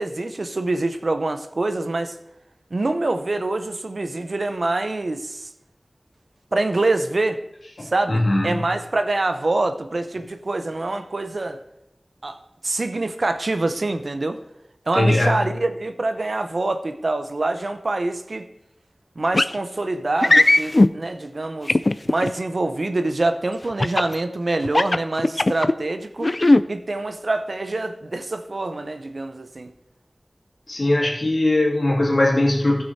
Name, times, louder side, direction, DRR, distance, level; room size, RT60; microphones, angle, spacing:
voice 1, 0.0-2.1 2.7-5.5 6.5-7.4 7.8-11.6 12.2-14.4 14.9-18.5 19.2-21.8 22.1-26.3 26.7-29.7, right 2 dB, 70° right, 8 dB, 0.8 m, -25 dB
voice 2, 7.8-8.6 14.9-15.4 30.7-32.8, left 1 dB, 65° left, -3 dB, 2.4 m, -20 dB
sound 1, 19.3-19.5 20.2-20.9 21.7-22.3 23.8-24.1 24.6-25.7 26.2-26.6, left 2 dB, 50° left, 0.4 m, -16 dB
15.0 x 6.2 x 4.3 m, 0.85 s
wide cardioid pair, 50°, 0 cm